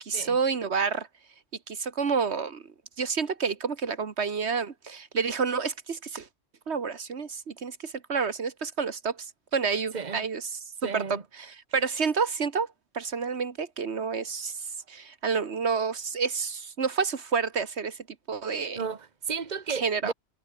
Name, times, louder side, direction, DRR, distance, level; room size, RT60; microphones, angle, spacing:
voice 1, 0.1-1.1 1.7-2.6 3.0-6.3 6.7-9.2 9.5-10.4 10.8-11.0 11.7-12.7 12.9-14.6 14.9-18.0 18.3-18.8 19.8-20.1, right 5 dB, 75° right, 1.7 m, -29 dB
voice 2, 9.9-10.3 10.8-11.2 18.7-20.1, right 5 dB, 40° right, 1.6 m, -33 dB
omnidirectional pair, 1.1 m